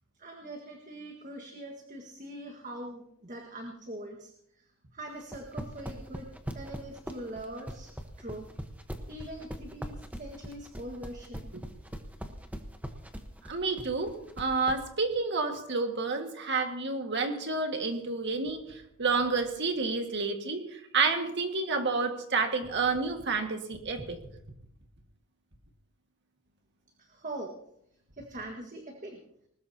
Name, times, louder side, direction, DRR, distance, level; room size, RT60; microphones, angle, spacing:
voice 1, 0.2-6.3 6.5-8.4 9.1-11.5 27.0-27.6 28.1-29.2, right 1 dB, 35° right, 1 dB, 1.7 m, -42 dB
sound 1, 5.2-14.8, equal, 5° right, 1.1 m, -40 dB
voice 2, 13.5-18.6 19.0-24.2, right 4 dB, 50° right, 5 dB, 1.8 m, -29 dB
20.5 x 19.5 x 2.9 m, 0.74 s
head